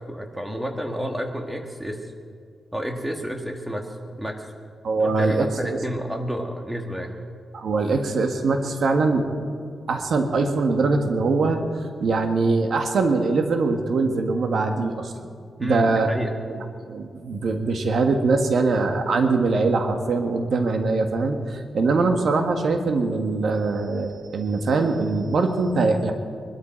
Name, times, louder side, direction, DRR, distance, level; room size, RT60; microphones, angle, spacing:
voice 1, 0.1-2.0 2.7-3.9 4.2-4.4 5.0-7.2 15.6-16.4, equal, 5° right, 3 dB, 1.9 m, -30 dB
voice 2, 4.8-5.8 7.5-9.3 9.9-11.6 12.0-15.1 15.6-16.2 16.5-16.6 16.8-26.1, right 3 dB, 65° right, 5 dB, 1.6 m, -22 dB
22.5 x 12.5 x 4.5 m, 2.2 s
wide cardioid pair, 120°, 0 cm